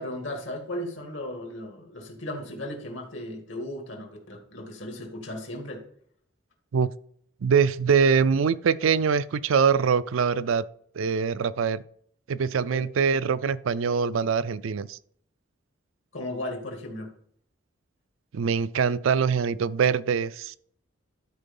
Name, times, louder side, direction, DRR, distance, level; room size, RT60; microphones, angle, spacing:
voice 1, 0.0-5.8 12.7-12.9 16.1-17.1, left 1 dB, 70° left, 2.3 m, -36 dB
voice 2, 7.4-10.6 10.9-11.8 12.3-15.0 18.3-20.6, right 6 dB, 80° right, 0.4 m, -23 dB
12.5 x 4.5 x 5.4 m
head